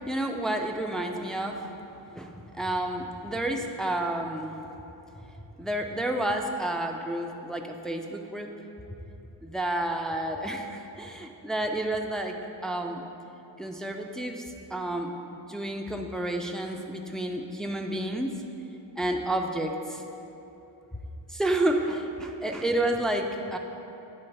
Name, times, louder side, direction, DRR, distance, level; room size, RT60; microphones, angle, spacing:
voice 1, 0.1-1.7 2.2-4.5 5.6-8.5 9.4-12.4 12.6-13.0 13.6-14.4 14.7-18.3 19.0-20.0 21.3-23.6, right 1 dB, ahead, 2 dB, 0.4 m, -30 dB
8.8 x 3.4 x 3.3 m, 3.0 s
cardioid pair, 50°, 48 cm